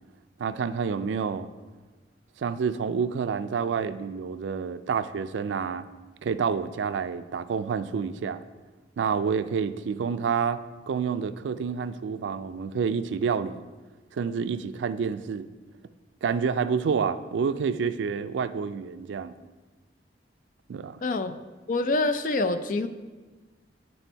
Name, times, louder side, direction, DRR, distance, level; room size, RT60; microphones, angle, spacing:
voice 1, 0.4-1.5 2.4-5.9 6.2-8.4 9.0-10.6 10.9-13.6 14.2-15.5 16.2-19.3 20.7-21.0, right 6 dB, 85° right, 12 dB, 0.3 m, -28 dB
voice 2, 21.0-21.4 21.7-22.9, left 2 dB, 45° left, 10 dB, 0.4 m, -26 dB
8.6 x 4.2 x 4.5 m, 1.3 s
head